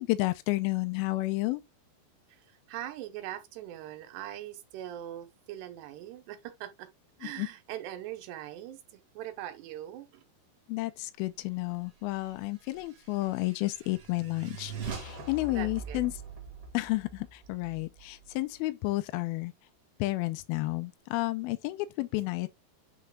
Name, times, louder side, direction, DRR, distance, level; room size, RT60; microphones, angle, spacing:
voice 1, 0.0-1.6 7.4-7.5 10.7-16.1 16.7-19.5 20.0-22.5, left 20 dB, 85° left, 2.2 m, -31 dB
voice 2, 2.3-6.9 7.2-10.2 15.5-16.0, right 12 dB, 85° right, 3.1 m, -41 dB
sound 1, 12.8-18.4, right 5 dB, 45° right, 2.0 m, -43 dB
9.1 x 3.2 x 3.7 m
omnidirectional pair, 4.8 m